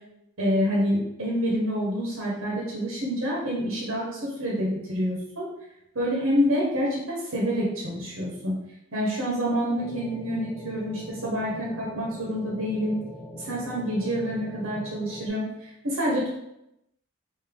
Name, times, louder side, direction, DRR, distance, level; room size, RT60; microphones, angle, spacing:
voice 1, 0.4-5.5 5.9-8.5 8.9-13.0 13.3-15.5 15.8-16.3, equal, 65° right, -4 dB, 0.9 m, -27 dB
sound 1, 9.8-15.3, left 1 dB, ahead, 0.6 m, -42 dB
3.6 x 2.6 x 3.4 m, 0.83 s
head